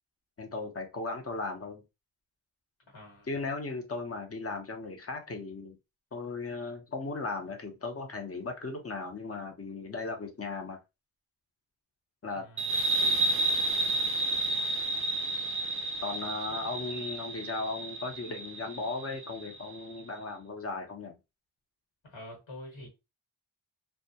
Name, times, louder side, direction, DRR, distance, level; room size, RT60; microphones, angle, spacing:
voice 1, 0.4-1.8 3.3-5.8 6.1-10.8 12.2-12.4 13.0-13.3 16.0-21.1, left 3 dB, 30° left, 0.6 m, -37 dB
voice 2, 2.9-3.3 12.4-12.7 22.0-22.9, left 1 dB, 65° left, 1.3 m, -46 dB
sound 1, 12.6-19.8, right 2 dB, 30° right, 0.3 m, -31 dB
2.2 x 2.0 x 2.7 m
wide cardioid pair, 50°, 49 cm